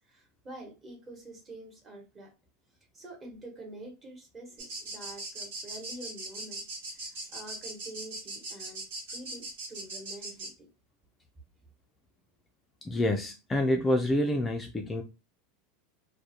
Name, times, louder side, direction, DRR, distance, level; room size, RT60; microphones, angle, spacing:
voice 1, 0.0-2.3 2.9-6.6 6.9-10.7, right 1 dB, 25° right, 1.0 m, -47 dB
sound 1, 4.6-10.5, right 2 dB, 80° right, 1.1 m, -40 dB
voice 2, 12.8-15.0, left 1 dB, 15° left, 0.3 m, -27 dB
2.3 x 2.1 x 2.8 m
supercardioid pair, 120°, 0 cm